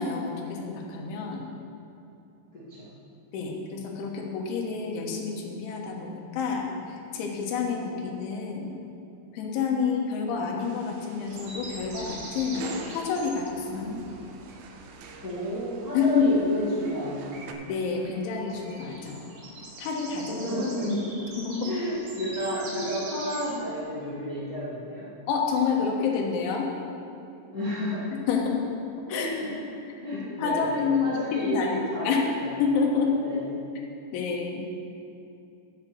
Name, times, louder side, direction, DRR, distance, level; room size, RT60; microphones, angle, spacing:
voice 1, 0.0-1.5 3.3-8.8 9.3-12.7 12.9-13.9 15.9-16.3 17.7-19.3 19.8-20.5 21.4-21.7 25.3-26.7 28.3-28.6 29.1-29.3 30.1-32.2 32.6-33.1 34.1-34.7, left 5 dB, 75° left, 0 dB, 3.6 m, -28 dB
voice 2, 2.5-2.9 13.7-14.1 15.2-17.5 20.3-21.1 21.6-25.0 27.5-28.1 29.1-29.6 30.0-32.5 33.2-33.4, equal, 50° left, -10 dB, 1.1 m, -31 dB
sound 1, 10.6-17.5, right 5 dB, 80° right, 3.0 m, -45 dB
sound 2, 11.3-23.8, right 2 dB, 60° right, 4.1 m, -44 dB
10.0 x 7.5 x 7.6 m, 2.7 s
omnidirectional pair, 5.6 m